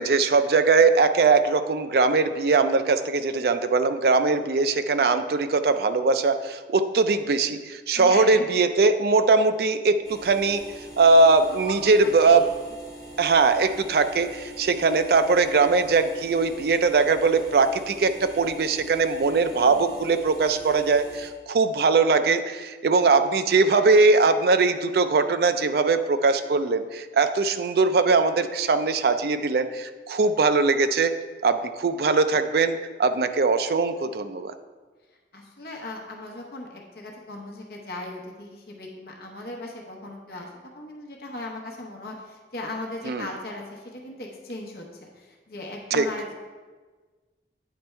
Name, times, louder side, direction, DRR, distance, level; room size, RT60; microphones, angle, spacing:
voice 1, 0.0-10.6 11.0-12.5 13.2-31.2 31.4-34.5 43.1-43.3 45.9-46.1, right 4 dB, 60° right, 10 dB, 0.4 m, -21 dB
voice 2, 7.9-8.6 11.4-12.5 19.2-19.8 35.3-40.5 40.7-46.3, left 2 dB, 55° left, 0 dB, 0.9 m, -38 dB
sound 1, 10.0-21.3, right 1 dB, ahead, 1.6 m, -43 dB
9.1 x 3.4 x 4.4 m, 1.4 s
head